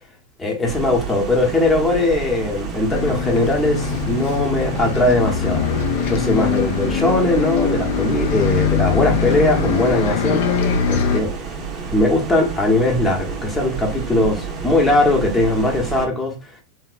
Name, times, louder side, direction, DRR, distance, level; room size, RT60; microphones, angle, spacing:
voice 1, 0.4-5.8 6.0-11.3 11.9-16.3, left 2 dB, 15° left, 0.8 m, -20 dB
sound 1, 0.7-16.0, right 6 dB, 30° right, 0.6 m, -30 dB
Bus, 2.9-11.2, left 7 dB, 50° left, 0.3 m, -22 dB
3.0 x 2.0 x 2.4 m
figure-of-eight pair, 90°, 0 cm